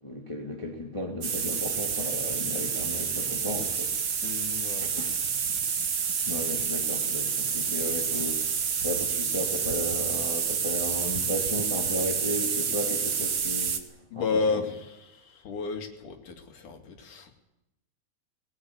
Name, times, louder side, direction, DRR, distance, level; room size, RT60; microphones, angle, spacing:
voice 1, 0.0-4.0 4.8-5.1 6.3-13.9, left 1 dB, 10° left, 1 dB, 2.1 m, -34 dB
sound 1, 1.2-13.8, right 6 dB, 50° right, 2.0 m, -29 dB
voice 2, 4.2-5.4 14.1-17.3, left 4 dB, 60° left, 3 dB, 3.8 m, -33 dB
20.5 x 19.0 x 9.6 m, 0.90 s
omnidirectional pair, 4.1 m